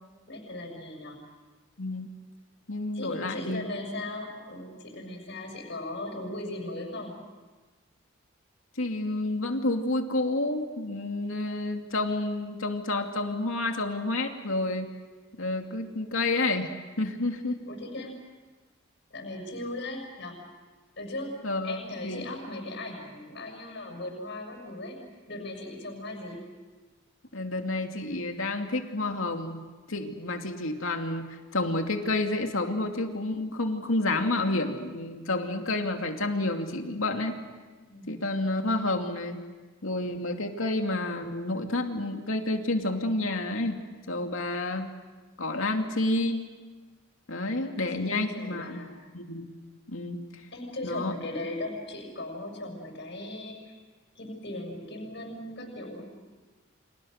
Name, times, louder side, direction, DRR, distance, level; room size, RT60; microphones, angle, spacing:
voice 1, 0.3-1.2 2.9-7.2 17.7-18.1 19.1-20.4 21.0-21.3 21.6-25.0 25.3-26.4 37.9-38.4 47.6-49.0 50.5-53.8 54.1-56.1, left 1 dB, 55° left, 2 dB, 6.7 m, -38 dB
voice 2, 2.7-3.6 8.8-14.9 15.4-16.7 17.0-17.6 21.4-22.3 27.3-37.4 38.1-39.4 39.8-44.9 45.4-46.5 47.3-48.8 49.1-49.6 49.9-50.2 50.8-51.1, left 2 dB, 85° left, 4 dB, 2.6 m, -29 dB
30.0 x 26.0 x 6.6 m, 1.3 s
head